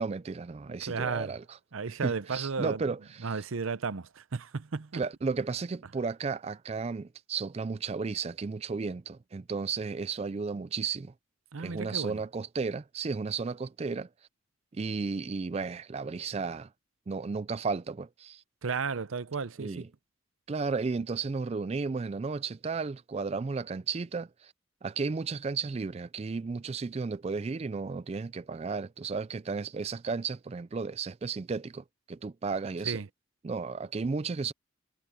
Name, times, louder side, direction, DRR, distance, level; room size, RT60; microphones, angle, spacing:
voice 1, 0.0-1.4 2.0-3.3 4.9-11.1 11.6-14.1 14.7-16.7 17.1-18.4 19.6-19.9 20.5-24.5 24.8-33.0 33.4-34.5, right 4 dB, 30° right, 0.3 m, -34 dB
voice 2, 0.8-1.4 1.7-2.9 3.2-5.0 11.5-12.2 18.6-19.9 32.8-33.1, right 5 dB, 80° right, 0.7 m, -34 dB
head